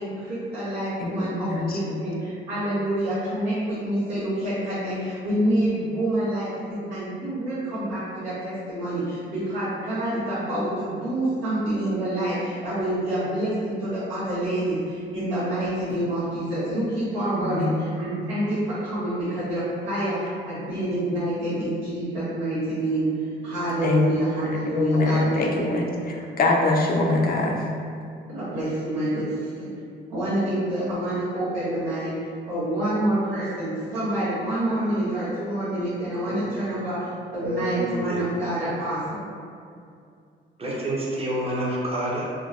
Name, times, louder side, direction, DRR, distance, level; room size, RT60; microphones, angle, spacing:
voice 1, 0.0-25.8 28.3-29.7 30.1-32.1 32.5-39.2, right 1 dB, 85° right, -14 dB, 1.2 m, -27 dB
voice 2, 1.0-2.0 17.4-17.8 23.8-24.1 24.5-27.7, left 2 dB, 50° left, 0 dB, 0.5 m, -24 dB
voice 3, 36.0-36.4 37.4-38.2 40.6-42.2, right 1 dB, 30° right, -5 dB, 0.8 m, -28 dB
3.5 x 2.2 x 2.5 m, 2.3 s
cardioid pair, 90°, 20 cm